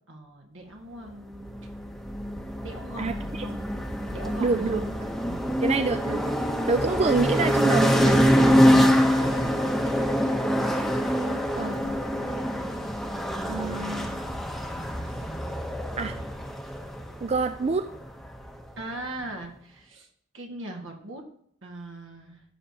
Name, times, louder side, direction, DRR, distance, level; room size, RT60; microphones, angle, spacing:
voice 1, 0.1-1.5 2.6-3.6 4.1-4.8 5.2-5.8 9.1-10.1 18.8-20.1 20.3-21.2 21.6-22.4, right 2 dB, 70° right, 2 dB, 1.8 m, -40 dB
sound 1, 1.3-18.8, equal, ahead, 0.8 m, -25 dB
voice 2, 3.0-3.5 4.4-5.1 5.6-6.4 6.7-8.2 11.2-11.8 13.4-14.3 16.0-16.2 17.2-17.9, right 4 dB, 30° right, 9 dB, 0.4 m, -27 dB
sound 2, 7.3-13.4, right 2 dB, 90° right, 2.3 m, -45 dB
15.5 x 6.6 x 2.9 m, 0.69 s
head